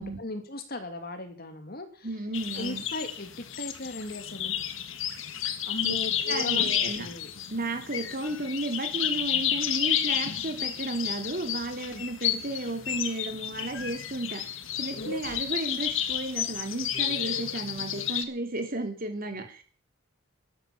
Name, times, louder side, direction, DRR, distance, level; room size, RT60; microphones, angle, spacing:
voice 1, 0.0-2.1 2.6-4.5 5.6-7.3 11.9-12.0 15.0-15.1, left 2 dB, 45° left, 7 dB, 2.8 m, -37 dB
voice 2, 2.0-2.8 5.8-5.9 6.3-7.1 7.5-14.4 14.7-19.6, right 2 dB, 45° right, 5 dB, 3.3 m, -33 dB
sound 1, 2.3-18.2, left 10 dB, 70° left, 1.7 m, -31 dB
13.0 x 12.5 x 7.2 m, 0.41 s
head